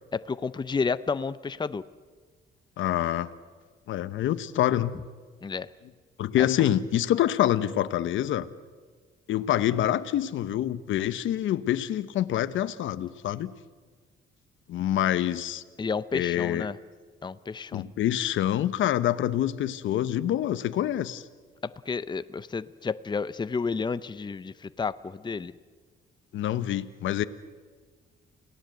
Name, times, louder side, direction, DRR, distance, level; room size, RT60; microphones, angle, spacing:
voice 1, 0.1-1.8 5.4-5.7 6.4-6.7 15.8-16.8 17.2-17.9 21.9-25.5, left 5 dB, 20° left, 14 dB, 0.7 m, -31 dB
voice 2, 2.8-3.3 3.9-5.0 6.2-8.5 9.3-13.5 14.7-15.6 16.1-16.7 17.7-21.2 26.3-27.2, left 12 dB, 75° left, 13 dB, 1.0 m, -26 dB
29.0 x 18.0 x 7.9 m, 1.5 s
cardioid pair, 90°, 20 cm